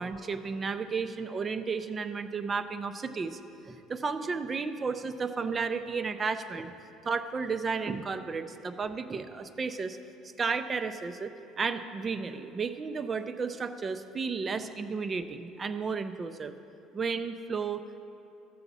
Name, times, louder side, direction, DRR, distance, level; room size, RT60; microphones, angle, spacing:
voice 1, 0.0-3.4 3.6-6.7 7.0-10.0 10.4-11.3 11.6-16.5 16.9-17.8, right 5 dB, 25° right, 10 dB, 0.5 m, -33 dB
14.0 x 7.1 x 4.0 m, 2.8 s
cardioid pair, 135°, 0 cm